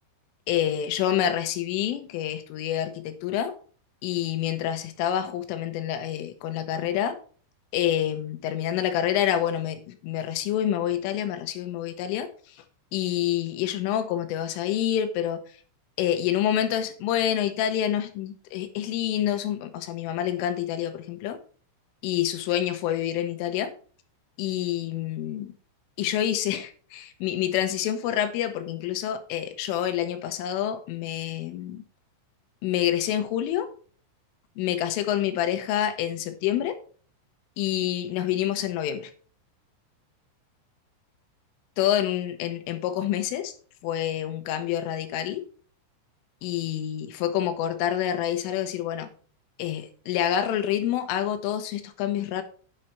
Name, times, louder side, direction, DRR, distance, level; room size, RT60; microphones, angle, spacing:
voice 1, 0.5-3.5 4.0-7.2 7.7-12.6 12.9-15.4 16.0-21.4 22.0-23.7 24.4-25.5 26.0-31.8 32.6-33.7 34.6-36.8 37.6-39.1 41.8-43.5 43.8-45.5 46.4-49.1 49.6-52.4, left 11 dB, 80° left, 3.4 m, -27 dB
9.9 x 6.4 x 4.4 m
omnidirectional pair, 6.0 m